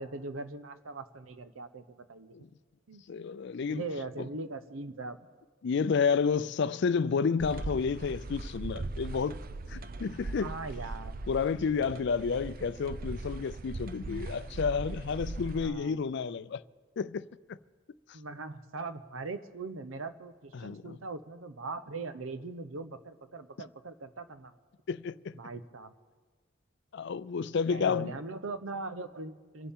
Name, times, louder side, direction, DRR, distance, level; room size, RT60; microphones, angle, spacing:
voice 1, 0.0-1.8 2.1-2.3 2.9-3.2 3.6-5.2 10.4-11.2 15.6-16.0 18.1-24.5 25.3-25.9 27.7-29.7, right 3 dB, 90° right, 0.9 m, -40 dB
voice 2, 3.1-3.8 5.6-9.4 9.7-10.6 11.3-16.6 17.0-17.3 20.5-21.0 24.9-25.4 26.9-28.1, left 5 dB, 60° left, 0.4 m, -30 dB
sound 1, 7.4-15.7, right 2 dB, 45° right, 0.5 m, -39 dB
27.5 x 11.5 x 3.7 m
head